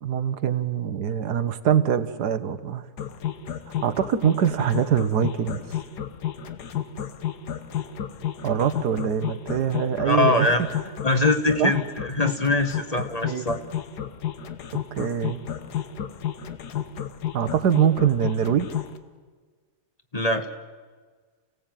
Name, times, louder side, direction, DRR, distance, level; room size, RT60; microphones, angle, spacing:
voice 1, 0.0-2.8 3.8-5.6 8.4-10.5 11.6-11.7 13.2-13.4 15.0-15.4 17.3-18.7, right 8 dB, 90° right, 12 dB, 1.7 m, -23 dB
sound 1, 3.0-19.0, left 10 dB, 85° left, 1.7 m, -31 dB
voice 2, 10.0-10.6 11.0-13.6 20.1-20.5, left 2 dB, 25° left, 7 dB, 1.3 m, -22 dB
29.0 x 17.0 x 9.1 m, 1.5 s
omnidirectional pair, 1.7 m